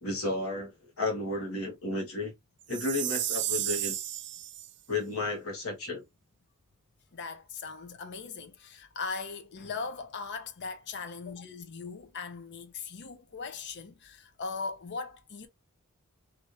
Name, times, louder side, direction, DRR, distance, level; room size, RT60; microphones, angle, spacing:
voice 1, 0.0-2.3 2.7-4.0 4.9-6.0, left 2 dB, 75° left, 1.2 m, -33 dB
Chime, 2.7-4.7, right 13 dB, 55° right, 0.4 m, -32 dB
voice 2, 7.1-15.5, left 4 dB, 55° left, 0.6 m, -39 dB
3.2 x 2.6 x 2.6 m
head